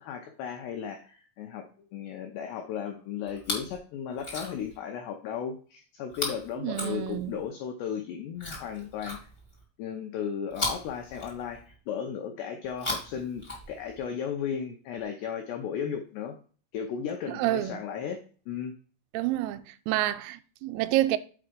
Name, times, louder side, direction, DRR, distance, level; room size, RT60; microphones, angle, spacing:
voice 1, 0.0-1.7 1.9-9.2 9.8-16.4 16.7-18.2 18.5-18.7, left 8 dB, 85° left, 2.3 m, -35 dB
Chewing mastication, 3.3-3.8 4.1-4.8 6.1-7.5 8.4-9.6 10.5-11.8 12.6-14.0 15.0-15.1, left 2 dB, 70° left, 0.5 m, -37 dB
voice 2, 6.6-7.4 17.3-17.8 19.1-21.2, right 15 dB, 85° right, 3.2 m, -28 dB
7.3 x 4.5 x 5.1 m
omnidirectional pair, 5.9 m